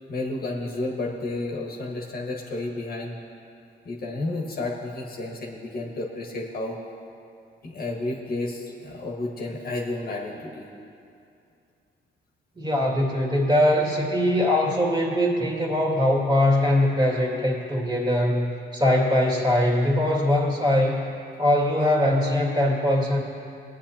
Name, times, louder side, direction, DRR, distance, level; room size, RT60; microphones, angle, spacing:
voice 1, 0.1-3.2 3.8-6.8 7.6-10.7, left 2 dB, 50° left, -1 dB, 1.5 m, -31 dB
voice 2, 12.6-21.1 21.4-23.2, left 1 dB, 20° right, -3 dB, 2.3 m, -22 dB
20.0 x 9.0 x 2.8 m, 2.6 s
cardioid pair, 90°, 20 cm